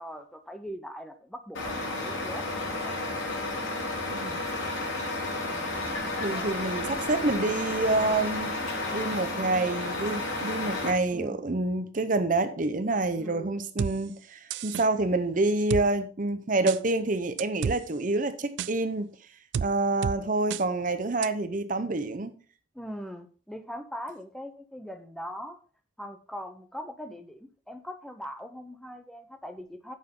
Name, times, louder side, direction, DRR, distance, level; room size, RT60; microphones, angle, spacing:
voice 1, 0.0-3.0 11.1-11.4 13.1-13.6 22.7-25.6 26.0-30.0, equal, ahead, 0.7 m, -41 dB
Truck, 1.5-10.9, left 2 dB, 85° left, 3.2 m, -32 dB
voice 2, 4.1-4.4 6.2-8.5 8.9-19.1 19.6-22.3, right 2 dB, 40° right, 0.7 m, -27 dB
sound 1, 13.8-13.9 14.5-14.9 15.7-15.8 16.7-16.8 17.4-17.8 18.6-18.7 19.5-19.7 20.0-20.2 20.5-20.6 21.2-21.3, right 7 dB, 65° right, 0.3 m, -30 dB
9.3 x 6.8 x 3.7 m
head